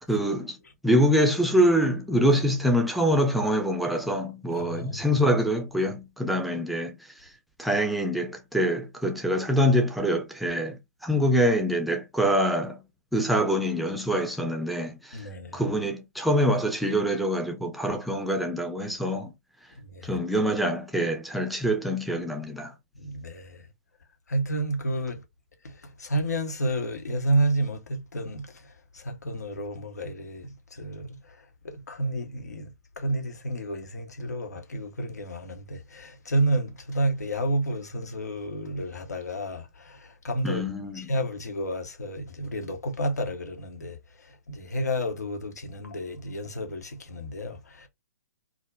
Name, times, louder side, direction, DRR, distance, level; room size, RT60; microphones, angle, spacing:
voice 1, 0.1-0.6 0.8-7.3 7.6-12.8 13.1-19.3 20.0-22.7 40.4-41.1, equal, ahead, 0.5 m, -25 dB
voice 2, 4.6-5.2 15.1-15.6 19.9-20.2 22.9-23.6 24.3-25.2 25.6-31.4 31.6-40.6 40.9-44.0 44.2-47.9, right 1 dB, 70° left, 0.8 m, -30 dB
2.4 x 2.1 x 3.2 m
figure-of-eight pair, 125°, 9 cm